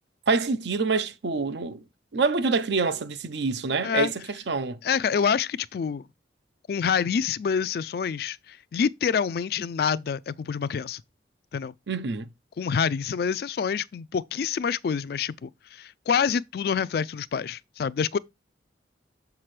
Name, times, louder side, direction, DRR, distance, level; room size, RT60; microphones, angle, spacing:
voice 1, 0.3-1.8 2.1-4.8 11.9-12.3, right 4 dB, 70° right, 0.6 m, -26 dB
voice 2, 4.8-6.1 6.7-11.0 11.5-11.7 12.6-18.2, left 6 dB, 55° left, 0.3 m, -27 dB
6.6 x 5.9 x 3.2 m
head